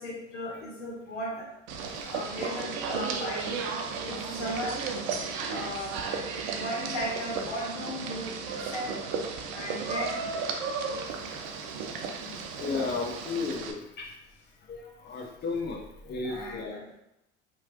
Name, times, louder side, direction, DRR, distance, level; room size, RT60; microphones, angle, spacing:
voice 1, 0.0-1.5 2.0-3.6 4.0-6.0 6.4-9.0 9.5-10.3 16.2-16.8, equal, 80° left, -3 dB, 0.8 m, -36 dB
sound 1, 1.7-13.7, right 5 dB, 55° right, 0.5 m, -34 dB
voice 2, 11.9-14.2 14.6-16.8, left 4 dB, 30° left, 0 dB, 0.7 m, -35 dB
2.9 x 2.3 x 2.9 m, 0.86 s
hypercardioid pair, 65°, 36 cm